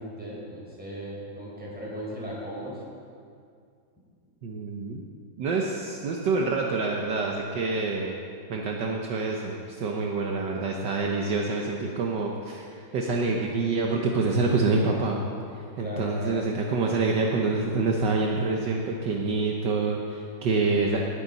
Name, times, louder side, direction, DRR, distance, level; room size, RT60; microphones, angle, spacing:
voice 1, 0.0-2.8 15.8-16.4, equal, 5° right, -6 dB, 4.0 m, -37 dB
voice 2, 4.4-5.0 5.4-8.1 8.5-12.7 12.9-15.2 15.5-21.0, right 3 dB, 65° right, 0 dB, 1.5 m, -26 dB
19.0 x 9.7 x 4.1 m, 2.3 s
omnidirectional pair, 2.1 m